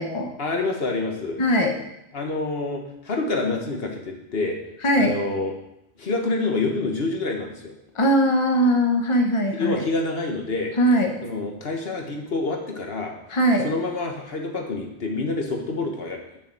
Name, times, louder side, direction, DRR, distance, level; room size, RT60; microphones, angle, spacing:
voice 1, 0.4-1.4 2.1-4.6 4.9-5.5 6.0-7.7 9.5-10.7 11.2-13.1 13.6-16.4, left 3 dB, 70° left, 2 dB, 1.6 m, -27 dB
voice 2, 1.4-1.7 4.8-5.2 7.9-9.8 10.8-11.1 13.3-13.7, equal, 30° left, 3 dB, 1.1 m, -20 dB
6.7 x 6.7 x 7.6 m, 0.82 s
omnidirectional pair, 1.1 m